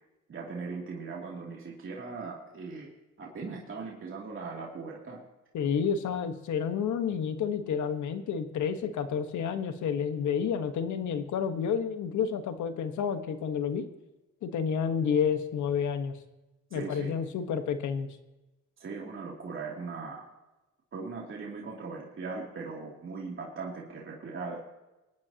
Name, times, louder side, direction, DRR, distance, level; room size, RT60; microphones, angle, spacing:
voice 1, 0.3-2.9 3.2-5.2 16.7-17.2 18.8-20.3 20.9-24.7, right 4 dB, 40° right, -3 dB, 2.8 m, -39 dB
voice 2, 5.5-13.8 14.4-16.2 16.7-18.1, left 7 dB, 75° left, 8 dB, 1.4 m, -30 dB
23.5 x 9.7 x 2.9 m, 1.1 s
cardioid pair, 90°, 30 cm